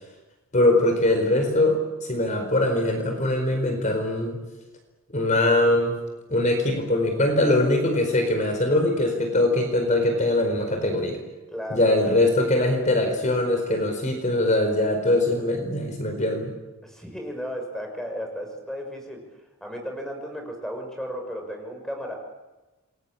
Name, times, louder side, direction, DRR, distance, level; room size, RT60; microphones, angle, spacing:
voice 1, 0.5-4.4 5.1-6.0 6.3-11.2 11.7-16.5, left 1 dB, 35° left, 5 dB, 4.7 m, -22 dB
voice 2, 11.5-12.2 16.8-19.2 19.6-22.2, equal, ahead, 3 dB, 6.2 m, -34 dB
29.0 x 22.5 x 8.7 m, 1.1 s
head